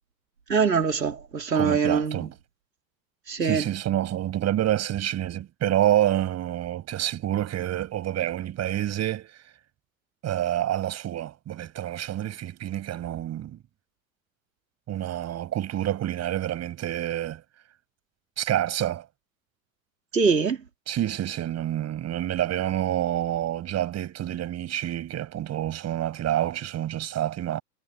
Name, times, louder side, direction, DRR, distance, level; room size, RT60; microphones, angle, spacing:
voice 1, 0.5-2.3 3.3-3.7 20.1-20.6, right 5 dB, 85° right, 4.4 m, -23 dB
voice 2, 1.5-2.3 3.4-9.4 10.2-13.6 14.9-17.4 18.4-19.1 20.9-27.6, right 12 dB, 30° right, 7.2 m, -28 dB
figure-of-eight pair, 95°, 49 cm